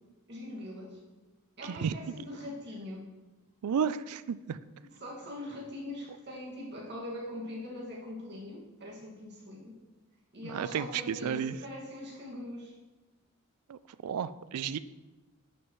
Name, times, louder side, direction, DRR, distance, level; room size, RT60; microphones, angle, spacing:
voice 1, 0.3-1.0 1.6-3.1 4.9-9.8 10.3-12.7, left 1 dB, 50° right, -4 dB, 2.0 m, -42 dB
voice 2, 1.6-1.9 3.6-4.6 10.4-11.6 13.7-14.8, right 7 dB, 90° right, 15 dB, 0.4 m, -32 dB
11.0 x 6.2 x 3.1 m, 1.2 s
head